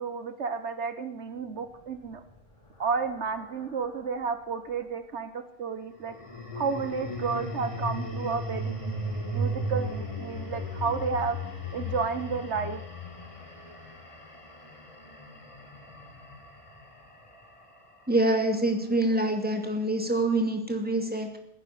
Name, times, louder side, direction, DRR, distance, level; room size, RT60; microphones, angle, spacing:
voice 1, 0.0-2.2 2.8-6.1 6.5-9.0 9.3-11.4 11.7-12.8, right 5 dB, 70° right, 10 dB, 1.3 m, -31 dB
sound 1, 1.8-4.3 5.9-18.2, equal, 25° left, 2.5 m, -37 dB
voice 2, 18.1-21.4, right 1 dB, 10° right, 3 dB, 2.4 m, -26 dB
16.5 x 9.8 x 8.2 m, 0.72 s
omnidirectional pair, 1.2 m